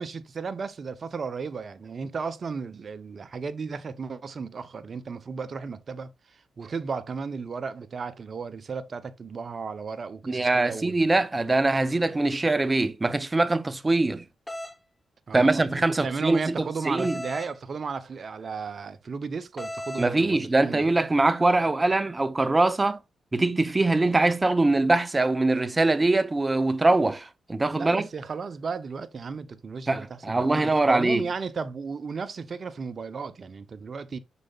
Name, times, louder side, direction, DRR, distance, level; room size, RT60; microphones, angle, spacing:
voice 1, 0.0-11.2 15.3-15.6 16.0-20.8 27.7-34.2, right 5 dB, 55° right, 1.1 m, -34 dB
voice 2, 10.2-14.2 15.3-17.2 20.0-23.0 23.3-28.1 29.9-31.2, right 2 dB, 30° right, 1.1 m, -23 dB
sound 1, 14.5-14.8 17.0-17.5 19.6-20.1, left 1 dB, 10° left, 1.9 m, -35 dB
9.7 x 6.6 x 2.6 m
supercardioid pair, 55°, 0 cm